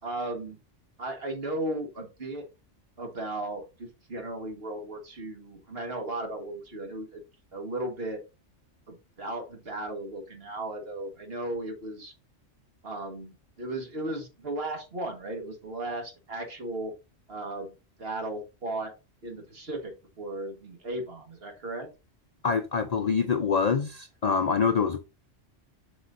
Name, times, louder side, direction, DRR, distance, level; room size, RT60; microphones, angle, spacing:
voice 1, 0.0-0.6 1.0-2.4 3.0-7.2 7.5-8.2 8.9-12.1 12.8-16.9 17.3-17.7 18.0-18.9 19.2-19.9 20.2-21.9, right 1 dB, 55° right, 1.8 m, -35 dB
voice 2, 22.4-25.0, left 5 dB, 50° left, 0.5 m, -25 dB
8.0 x 5.9 x 2.6 m
omnidirectional pair, 1.2 m